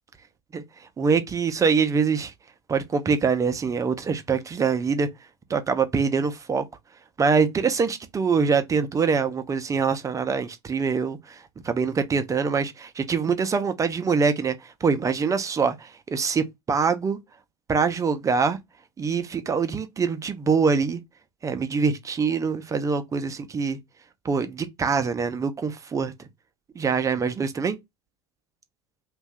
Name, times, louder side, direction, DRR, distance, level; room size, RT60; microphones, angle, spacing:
voice 1, 1.0-2.3 2.7-5.1 5.5-6.6 7.2-11.4 11.6-17.2 17.7-18.6 19.0-21.0 21.4-23.8 24.2-26.1 26.8-27.8, right 5 dB, 20° right, 0.6 m, -24 dB
2.6 x 2.3 x 3.2 m
figure-of-eight pair, 70°, 15 cm